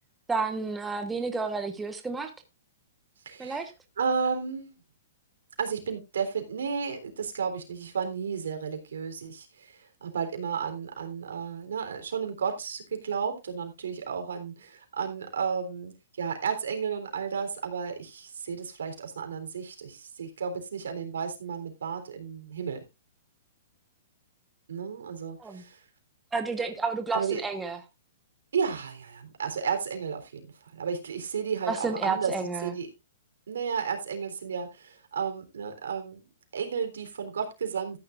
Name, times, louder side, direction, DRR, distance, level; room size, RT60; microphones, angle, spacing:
voice 1, 0.3-2.3 3.4-3.7 25.4-25.6 26.3-27.8 31.7-32.7, right 4 dB, 10° right, 6 dB, 1.2 m, -31 dB
voice 2, 3.3-3.6 4.0-4.7 5.6-22.8 24.7-25.8 27.1-27.4 28.5-32.3 32.6-32.9 33.5-36.2 36.5-38.0, right 6 dB, 85° right, 6 dB, 3.6 m, -33 dB
14.0 x 9.8 x 2.5 m, 0.24 s
hypercardioid pair, 155°, 0 cm